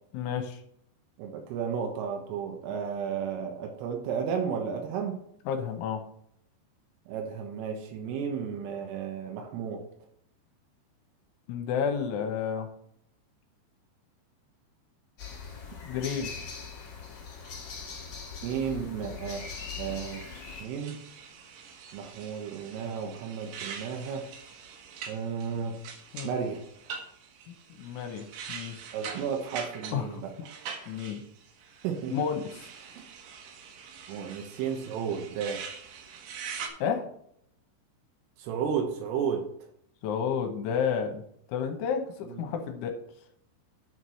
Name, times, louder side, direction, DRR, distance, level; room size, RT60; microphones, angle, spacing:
voice 1, 0.1-0.6 5.5-6.0 11.5-12.7 15.8-16.3 26.1-26.3 27.8-28.8 29.9-30.2 30.9-31.2 32.1-32.7 36.8-37.1 40.0-41.2 41.5-43.0, left 7 dB, 75° left, 4 dB, 3.3 m, -31 dB
voice 2, 1.2-5.2 7.1-9.8 16.0-16.1 18.4-19.4 19.8-20.2 20.6-21.0 21.9-24.3 25.1-25.8 26.2-26.6 28.9-30.6 31.8-32.3 33.0-33.1 34.1-35.7 38.4-39.4 42.3-42.5, right 7 dB, 85° right, 2 dB, 3.8 m, -33 dB
sound 1, 15.2-20.6, left 5 dB, 45° left, 2.0 m, -41 dB
sound 2, 19.3-36.7, right 6 dB, 65° right, 3.0 m, -44 dB
11.0 x 4.7 x 5.6 m, 0.71 s
omnidirectional pair, 5.7 m